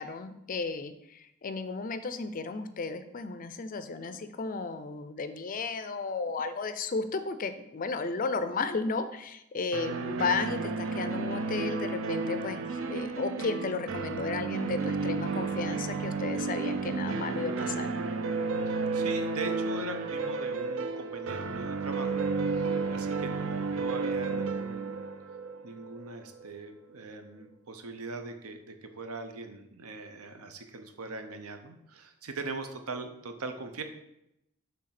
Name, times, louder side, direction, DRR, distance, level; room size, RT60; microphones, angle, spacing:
voice 1, 0.0-17.9, left 4 dB, 35° left, 10 dB, 0.4 m, -34 dB
sound 1, 9.7-26.4, right 4 dB, 60° right, 0.5 m, -32 dB
voice 2, 18.7-25.0 25.6-33.8, right 3 dB, 80° right, 7 dB, 0.8 m, -41 dB
6.5 x 3.5 x 5.8 m, 0.83 s
head